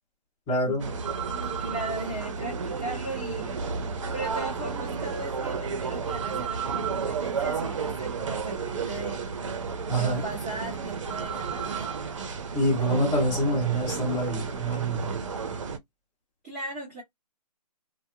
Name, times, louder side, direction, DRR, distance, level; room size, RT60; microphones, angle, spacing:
voice 1, 0.5-0.9 9.9-10.2 12.5-15.2, right 1 dB, 20° left, 1.2 m, -26 dB
sound 1, 0.8-15.8, right 5 dB, 50° right, 0.6 m, -32 dB
voice 2, 1.6-3.6 4.1-9.4 10.0-11.9 16.4-17.0, right 2 dB, ahead, 0.3 m, -37 dB
2.6 x 2.1 x 2.2 m
hypercardioid pair, 155°, 21 cm